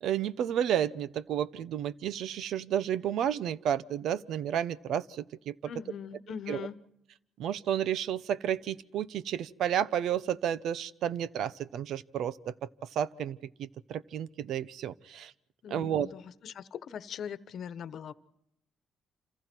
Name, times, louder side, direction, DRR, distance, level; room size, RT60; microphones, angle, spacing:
voice 1, 0.0-5.5 6.5-6.7 7.4-12.5 12.9-15.3 15.7-16.1, right 9 dB, 75° right, 16 dB, 0.8 m, -31 dB
voice 2, 5.7-6.8 15.6-18.1, left 7 dB, 65° left, 13 dB, 1.1 m, -41 dB
28.0 x 27.5 x 4.6 m, 0.79 s
cardioid pair, 90°, 0 cm